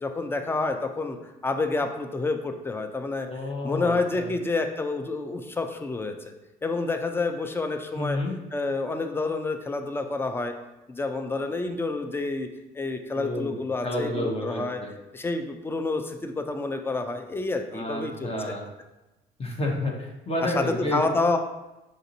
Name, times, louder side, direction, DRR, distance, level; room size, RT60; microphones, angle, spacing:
voice 1, 0.0-3.3 3.6-6.3 6.6-8.2 8.5-10.5 10.9-12.5 12.7-14.8 15.1-18.3 20.4-21.4, left 3 dB, 10° left, 6 dB, 0.4 m, -28 dB
voice 2, 3.3-4.3 7.9-8.3 13.1-14.9 17.7-18.7 19.4-21.0, left 1 dB, 30° left, 0 dB, 0.8 m, -30 dB
5.1 x 2.6 x 2.7 m, 1.0 s
supercardioid pair, 65°, 19 cm